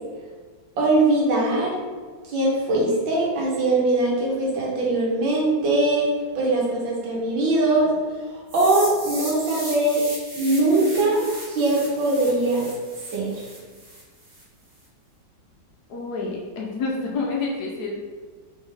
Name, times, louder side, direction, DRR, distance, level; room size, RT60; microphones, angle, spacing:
voice 1, 0.8-1.8 2.2-7.9 8.3-10.0 10.4-11.2 11.5-12.7 13.1-13.5, right 2 dB, 80° right, -4 dB, 1.8 m, -21 dB
sound 1, 8.5-14.4, right 1 dB, 45° right, 1.7 m, -37 dB
voice 2, 15.9-17.9, left 3 dB, 70° left, -1 dB, 1.1 m, -28 dB
3.9 x 3.6 x 3.4 m, 1.5 s
omnidirectional pair, 2.1 m